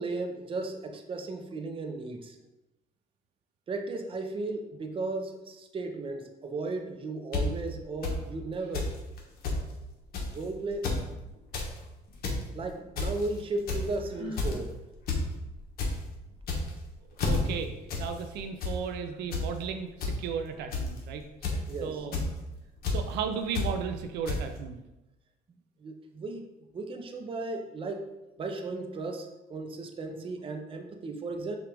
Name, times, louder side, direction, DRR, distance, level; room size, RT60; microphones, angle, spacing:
voice 1, 0.0-2.4 3.7-8.9 10.3-10.9 12.5-14.7 21.7-22.0 25.8-26.4 26.7-28.0 28.4-31.6, right 3 dB, 30° right, 4 dB, 0.6 m, -35 dB
sound 1, 7.3-7.4 8.0-8.1 8.7-8.9 9.2-9.3 9.4-9.6 10.1-10.3 10.7-11.0 11.4-11.7 12.1-12.4 13.0-13.3 13.7-13.9 14.4-14.6 15.1-15.2 15.5-15.9 16.4-16.8 17.2-17.4 17.9-18.0 18.3-18.7 19.3-19.4 20.0-20.1 20.7-21.0 21.4-21.7 22.1-22.3 22.8-23.0 23.5-23.7 24.3-24.4, left 4 dB, 65° left, 1.1 m, -29 dB
Sigh, 14.0-14.6, left 2 dB, 35° left, 1.5 m, -41 dB
voice 2, 17.2-17.7 18.0-22.2 22.9-24.8, right 6 dB, 80° right, 6 dB, 0.4 m, -35 dB
6.0 x 2.4 x 3.4 m, 0.99 s
cardioid pair, 110°, 17 cm